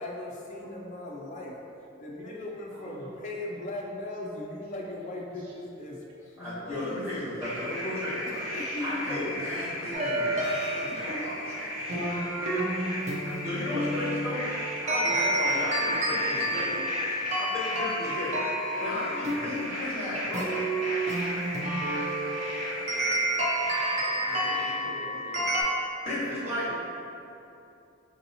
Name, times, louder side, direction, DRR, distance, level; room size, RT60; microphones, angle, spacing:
voice 1, 0.0-1.6 2.0-7.4 8.3-9.4 26.2-26.7, left 2 dB, 35° left, -2 dB, 0.3 m, -38 dB
voice 2, 2.2-3.1 5.3-5.5 10.9-11.0 15.9-16.9 21.9-22.4 22.9-23.3 24.0-25.6, right 1 dB, 85° right, -4 dB, 0.5 m, -45 dB
voice 3, 6.4-8.2 8.8-12.0 13.4-14.5 14.8-16.7 17.3-18.4 18.8-20.6 22.1-22.2 26.0-26.8, left 1 dB, 15° right, -12 dB, 1.3 m, -35 dB
sound 1, 7.4-24.7, equal, 70° right, 1.3 m, -36 dB
sound 2, 9.9-25.6, right 1 dB, 35° right, 0.5 m, -30 dB
5.2 x 2.8 x 2.7 m, 2.9 s
head